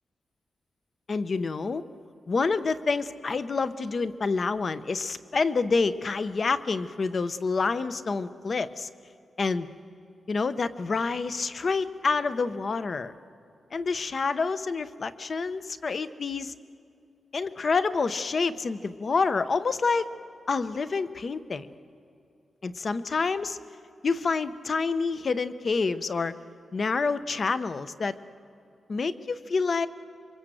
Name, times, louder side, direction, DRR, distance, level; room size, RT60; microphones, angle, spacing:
voice 1, 1.1-1.8 2.3-8.9 9.4-9.7 10.3-13.1 13.7-16.5 17.3-20.1 20.5-21.7 22.6-23.6 24.0-26.3 26.7-28.2 28.9-29.9, left 4 dB, 40° left, 12 dB, 0.8 m, -28 dB
27.0 x 24.0 x 7.7 m, 2.6 s
wide cardioid pair, 175°, 0 cm